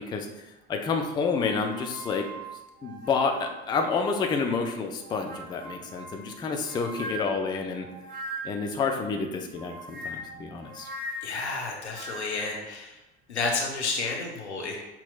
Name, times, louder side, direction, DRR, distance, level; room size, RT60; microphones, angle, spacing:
voice 1, 0.7-2.2 2.8-7.9 8.4-10.9, left 5 dB, 15° left, 3 dB, 0.4 m, -29 dB
sound 1, 1.3-4.6 5.0-8.7 9.5-12.6, right 1 dB, 25° right, 0.8 m, -41 dB
voice 2, 11.2-13.0 13.3-14.8, left 3 dB, 85° left, 0 dB, 0.7 m, -31 dB
5.9 x 2.8 x 2.3 m, 0.99 s
figure-of-eight pair, 65°, 33 cm